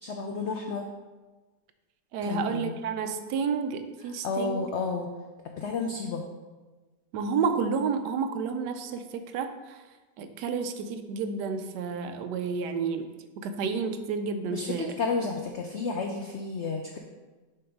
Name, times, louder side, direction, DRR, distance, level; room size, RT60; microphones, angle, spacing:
voice 1, 0.0-0.9 2.2-2.8 4.2-5.1 5.4-6.2 14.5-17.0, left 4 dB, 85° left, 3 dB, 0.6 m, -31 dB
voice 2, 2.1-4.7 7.1-9.8 10.2-13.1 13.4-14.9, right 5 dB, 80° right, 8 dB, 1.2 m, -30 dB
6.9 x 3.7 x 5.1 m, 1.2 s
omnidirectional pair, 1.8 m